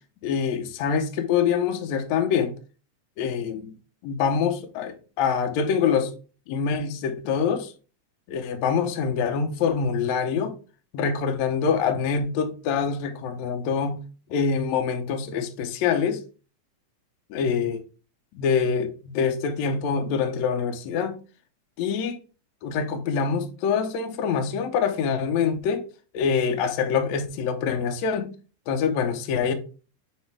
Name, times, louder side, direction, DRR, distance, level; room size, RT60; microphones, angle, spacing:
voice 1, 0.2-2.5 3.2-3.7 4.0-6.1 6.5-7.7 8.3-10.5 10.9-14.0 14.3-16.2 17.3-17.8 18.3-21.2 21.8-22.2 22.6-25.8 26.1-28.3 28.7-29.5, left 6 dB, 90° left, 1.6 m, -25 dB
9.1 x 3.3 x 3.3 m
omnidirectional pair, 4.3 m